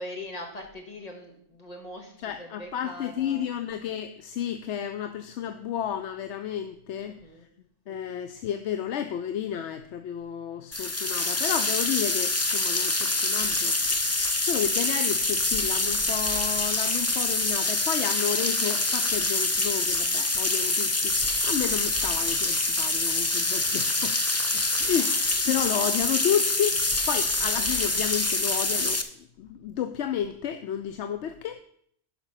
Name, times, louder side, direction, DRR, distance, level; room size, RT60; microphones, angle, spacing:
voice 1, 0.0-3.5 7.0-7.4 24.9-25.3 25.7-25.8, left 1 dB, 35° left, 2 dB, 2.0 m, -41 dB
voice 2, 2.2-7.2 7.9-13.8 14.1-24.2 24.5-25.1 25.5-29.0 29.4-31.6, left 9 dB, 85° left, 10 dB, 0.9 m, -31 dB
sound 1, 10.7-29.0, left 2 dB, 20° left, 0.5 m, -26 dB
11.0 x 5.8 x 5.7 m, 0.66 s
omnidirectional pair, 1.2 m